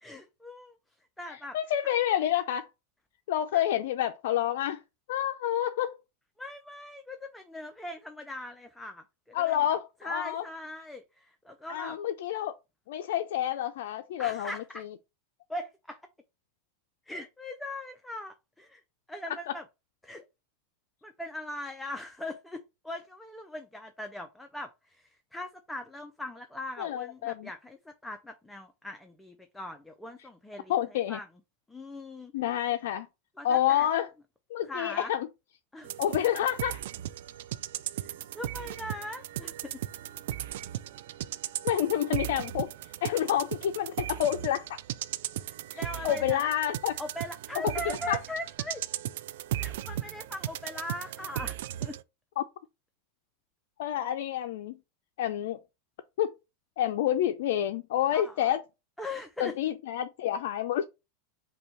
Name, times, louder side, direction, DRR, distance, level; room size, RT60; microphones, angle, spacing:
voice 1, 0.0-0.8 1.2-1.6 1.8-1.9 3.5-3.6 6.4-9.6 10.0-12.0 14.2-14.8 15.5-16.0 17.1-18.8 19.1-19.6 20.0-20.2 21.0-31.3 31.7-32.3 33.4-33.9 34.7-35.1 35.7-35.9 38.0-39.7 45.4-46.5 47.0-48.8 49.6-52.0 58.1-58.6 59.0-59.5, left 1 dB, 5° left, 0.5 m, -40 dB
voice 2, 1.3-2.7 3.3-4.8 5.1-6.0 9.3-10.4 11.7-12.5 12.9-14.9 26.8-27.5 30.7-31.2 32.3-33.1 33.4-34.1 34.5-35.3 36.0-36.8 41.6-44.7 45.7-47.0 47.6-48.2 52.4-52.5 53.8-54.7 55.2-55.6 56.2-56.3 56.8-58.6 59.4-60.9, left 11 dB, 70° left, 0.4 m, -29 dB
sound 1, 35.8-52.0, right 13 dB, 70° right, 0.3 m, -37 dB
5.3 x 2.3 x 4.3 m
supercardioid pair, 135°, 0 cm